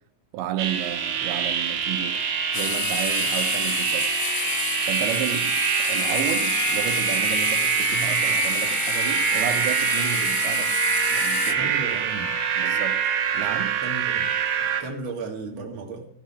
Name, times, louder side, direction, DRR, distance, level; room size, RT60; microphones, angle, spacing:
voice 1, 0.3-2.2 2.5-4.2 4.9-10.7 11.1-11.7 12.6-13.1 13.3-13.8, right 10 dB, 90° right, 3.2 m, -32 dB
sound 1, 0.6-14.8, right 7 dB, 70° right, 3.2 m, -25 dB
sound 2, 2.5-11.5, left 12 dB, 80° left, 2.7 m, -30 dB
voice 2, 11.6-12.3 13.8-14.3 14.8-16.1, right 3 dB, 45° right, 1.7 m, -34 dB
14.0 x 4.8 x 8.8 m
omnidirectional pair, 5.0 m